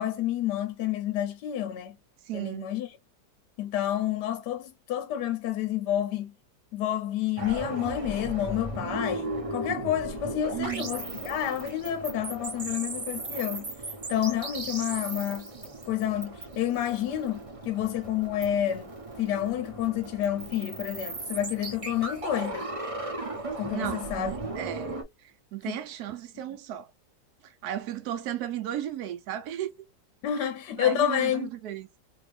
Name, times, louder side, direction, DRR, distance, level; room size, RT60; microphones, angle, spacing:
voice 1, 0.0-2.0 2.3-2.9 3.6-6.3 6.7-13.7 14.1-15.5 15.9-18.9 19.2-22.7 23.6-24.3 25.6-25.8 30.2-31.5, left 11 dB, 70° left, 1.2 m, -29 dB
voice 2, 2.3-2.7 10.5-10.9 23.7-25.0 25.5-26.9 27.6-29.7 30.4-31.9, right 11 dB, 70° right, 1.0 m, -34 dB
sound 1, 7.4-25.0, right 2 dB, 50° right, 0.4 m, -36 dB
2.9 x 2.7 x 3.2 m
omnidirectional pair, 2.0 m